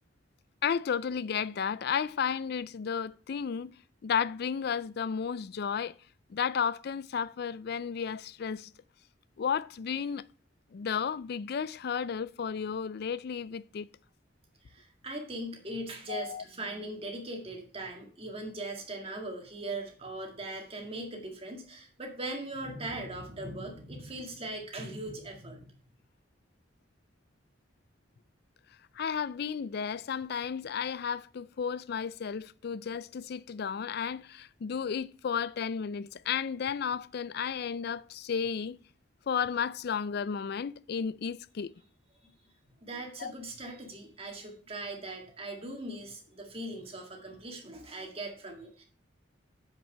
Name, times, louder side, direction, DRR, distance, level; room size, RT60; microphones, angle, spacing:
voice 1, 0.6-3.7 4.0-5.9 6.3-8.7 9.4-10.2 10.7-13.9 16.1-16.4 29.0-38.8 39.3-41.7 43.2-43.3, left 7 dB, 55° left, 0.4 m, -33 dB
voice 2, 14.7-25.7 42.8-48.8, right 2 dB, 30° right, 1.9 m, -40 dB
7.5 x 5.9 x 5.5 m
head